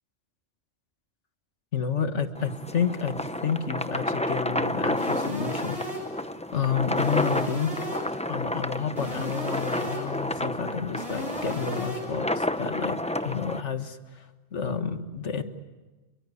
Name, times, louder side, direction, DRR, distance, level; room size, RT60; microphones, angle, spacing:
voice 1, 1.7-3.2 3.4-5.8 6.5-7.8 8.3-13.0 13.2-14.3 14.5-15.4, left 6 dB, 75° left, 8 dB, 1.9 m, -30 dB
sound 1, 2.3-13.6, left 1 dB, 5° left, 0.6 m, -31 dB
sound 2, 5.0-6.2 7.0-8.2 9.0-10.2 11.0-12.2, equal, 30° right, 8.0 m, -36 dB
29.5 x 23.0 x 8.4 m, 1.2 s
omnidirectional pair, 1.2 m